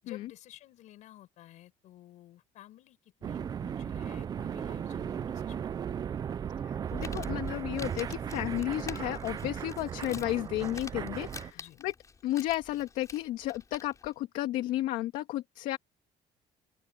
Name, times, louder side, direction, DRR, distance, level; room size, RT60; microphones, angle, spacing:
voice 1, 0.0-5.8 11.5-11.8, left 14 dB, 65° left, 7.8 m, -53 dB
sound 1, 3.2-11.5, right 8 dB, 30° right, 0.5 m, -36 dB
voice 2, 6.6-11.9 12.2-15.8, left 15 dB, 85° left, 2.2 m, -33 dB
Crumpling crinkling, 6.8-14.1, left 5 dB, 25° left, 5.4 m, -49 dB
open air
cardioid pair, 145°, 13 cm